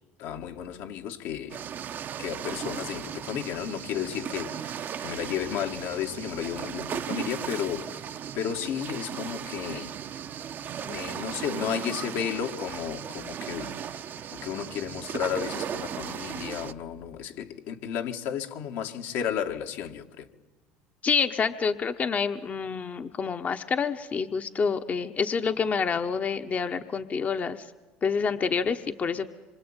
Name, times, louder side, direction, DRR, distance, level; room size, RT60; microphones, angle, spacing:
voice 1, 0.2-1.6 2.2-8.0 8.3-9.9 10.8-13.8 14.3-20.3, left 9 dB, 70° left, 2.1 m, -33 dB
sound 1, 1.5-16.7, right 9 dB, 45° right, 1.0 m, -36 dB
voice 2, 21.0-27.6 28.0-29.3, left 5 dB, 35° left, 1.2 m, -27 dB
26.0 x 24.5 x 9.0 m
supercardioid pair, 90°, 5 cm